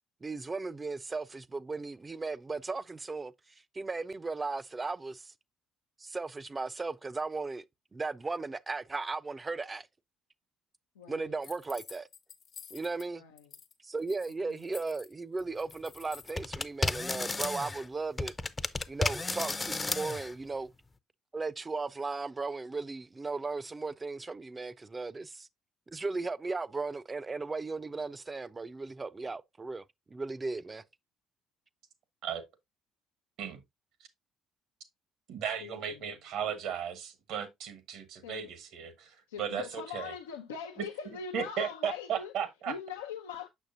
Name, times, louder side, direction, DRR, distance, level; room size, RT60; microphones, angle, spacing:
voice 1, 0.2-3.3 3.7-5.3 6.0-7.6 7.9-9.9 11.1-12.1 12.7-13.2 13.8-18.3 18.9-20.7 21.3-25.5 25.9-29.8 30.1-30.8, right 3 dB, 25° right, 0.5 m, -36 dB
voice 2, 11.0-11.4 13.2-13.5 14.4-14.7 35.6-36.1 38.2-38.5 39.3-42.3 42.7-43.5, left 7 dB, 90° left, 0.5 m, -42 dB
sound 1, 11.4-13.1 13.4-13.7 14.0-16.4, left 7 dB, 55° left, 0.9 m, -51 dB
sound 2, 16.4-17.9 18.2-20.3, left 3 dB, 25° left, 0.5 m, -33 dB
voice 3, 35.3-40.1 41.3-42.7, right 8 dB, 70° right, 1.2 m, -36 dB
6.4 x 6.2 x 2.6 m
hypercardioid pair, 55°, 0 cm